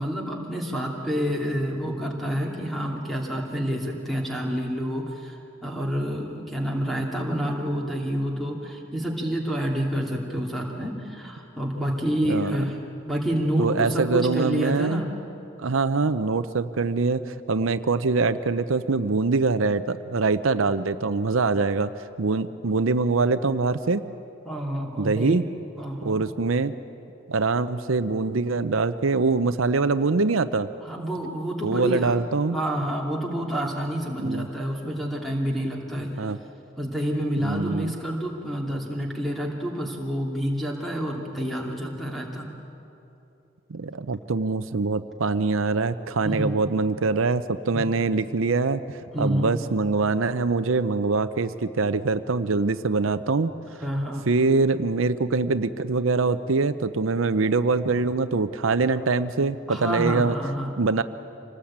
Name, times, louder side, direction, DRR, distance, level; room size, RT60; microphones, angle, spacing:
voice 1, 0.0-12.8 13.0-15.1 24.5-25.4 25.8-26.2 30.8-32.2 32.5-36.1 36.8-42.5 46.2-46.6 47.7-47.8 49.1-49.6 53.8-54.3 59.7-60.7, equal, ahead, -1 dB, 2.7 m, -28 dB
voice 2, 13.6-15.0 15.6-21.9 22.2-24.1 25.0-25.4 26.0-26.7 27.3-30.7 31.6-32.6 34.2-34.5 36.2-36.4 37.4-37.9 43.7-53.5 54.3-60.4 60.8-61.0, right 3 dB, 80° right, 11 dB, 0.7 m, -24 dB
26.5 x 19.0 x 8.7 m, 2.8 s
head